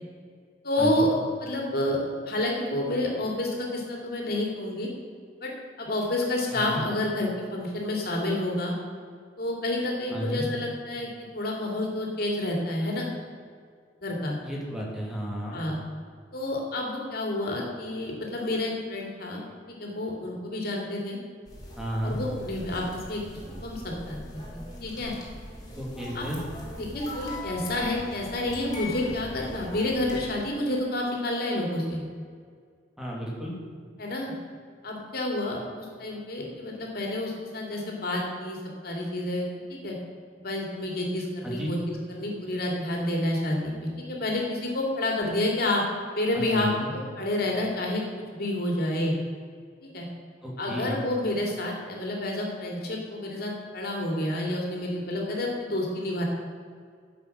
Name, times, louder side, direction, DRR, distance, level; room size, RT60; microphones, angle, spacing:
voice 1, 0.6-4.9 5.4-5.5 5.8-8.7 9.4-13.1 14.0-14.3 15.5-15.8 16.3-19.4 19.8-21.2 22.0-24.2 24.5-25.1 26.1-26.3 26.8-32.0 34.0-34.3 34.8-38.6 38.8-39.9 40.4-45.8 46.1-48.0 48.3-49.1 49.9-50.0 50.6-56.2, left 1 dB, 60° left, -1 dB, 2.6 m, -29 dB
voice 2, 6.5-6.8 10.1-10.5 14.4-15.6 21.8-22.2 25.7-26.4 33.0-33.6 41.4-41.7 46.3-46.9 50.4-51.0, equal, 5° right, -3 dB, 2.4 m, -32 dB
sound 1, 21.5-30.3, left 1 dB, 20° left, 2.7 m, -40 dB
10.5 x 7.5 x 6.0 m, 2.1 s
head